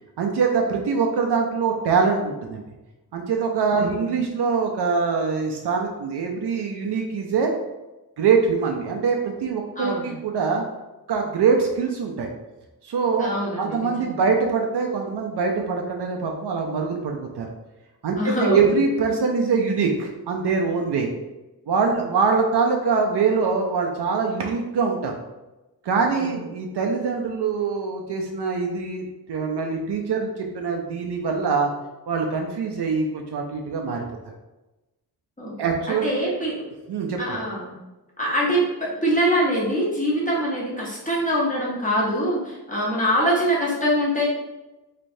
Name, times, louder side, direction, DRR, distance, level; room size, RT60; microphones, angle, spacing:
voice 1, 0.2-2.6 3.1-7.5 8.2-10.6 11.1-12.3 12.8-17.5 18.0-18.2 18.4-21.1 21.7-25.2 25.8-31.7 32.1-34.0 35.6-36.1 36.9-37.4, right 5 dB, 75° right, 2 dB, 0.5 m, -23 dB
voice 2, 3.7-4.1 9.8-10.2 13.2-14.2 18.2-18.7 26.1-26.4 35.4-36.6 37.2-37.8 38.2-44.2, equal, 20° left, -5 dB, 1.0 m, -24 dB
3.2 x 3.2 x 2.6 m, 1.0 s
wide cardioid pair, 115°, 40 cm